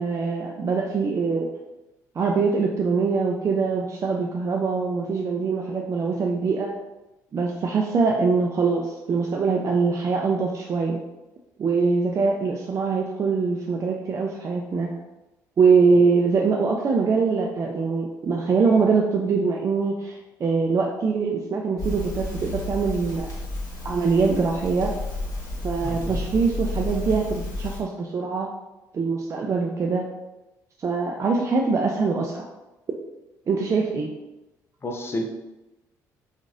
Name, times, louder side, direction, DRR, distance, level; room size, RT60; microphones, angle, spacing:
voice 1, 0.0-1.5 2.2-6.8 7.3-11.0 11.6-15.0 15.6-23.3 23.8-25.0 25.6-28.5 28.9-30.1 30.8-32.5 33.5-34.1, right 4 dB, 40° right, 0 dB, 0.4 m, -23 dB
Crackle, 21.8-27.8, left 2 dB, 45° left, 1.3 m, -31 dB
voice 2, 25.8-26.2 34.8-35.3, left 1 dB, 30° left, 2 dB, 0.6 m, -30 dB
3.0 x 2.4 x 2.6 m, 1.0 s
supercardioid pair, 65°, 8 cm